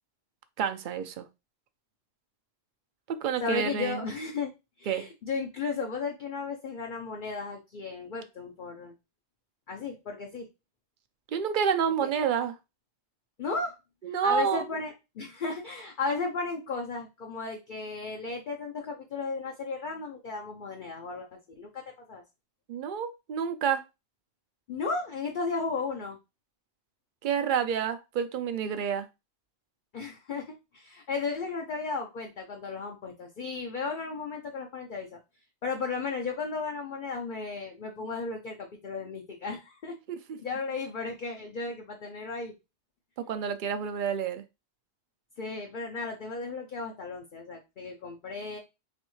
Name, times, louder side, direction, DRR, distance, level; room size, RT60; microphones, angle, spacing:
voice 1, 0.6-1.3 3.1-4.1 4.9-5.0 11.3-12.6 14.0-14.7 22.7-23.8 27.2-29.1 40.3-40.4 43.2-44.4, right 7 dB, 55° right, 9 dB, 0.6 m, -29 dB
voice 2, 3.4-4.5 4.8-8.9 9.7-10.5 12.0-12.1 13.4-13.7 14.2-21.3 21.6-21.8 22.1-22.2 24.7-26.2 29.9-35.2 35.6-40.0 40.4-42.5 45.4-48.6, left 4 dB, 55° left, 2 dB, 0.8 m, -34 dB
4.1 x 3.1 x 3.1 m, 0.25 s
omnidirectional pair, 1.1 m